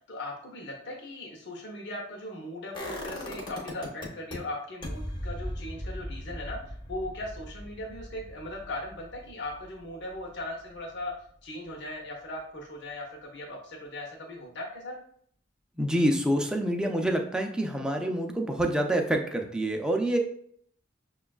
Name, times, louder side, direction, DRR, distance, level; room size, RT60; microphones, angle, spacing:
voice 1, 0.1-11.1 11.4-15.0, left 1 dB, 65° left, -1 dB, 0.7 m, -38 dB
sound 1, 2.7-4.4 4.8-10.7 11.0-11.1, left 1 dB, 25° left, 0.7 m, -39 dB
voice 2, 15.8-20.2, right 1 dB, 5° right, 2 dB, 0.4 m, -27 dB
5.9 x 2.3 x 2.3 m, 0.62 s
head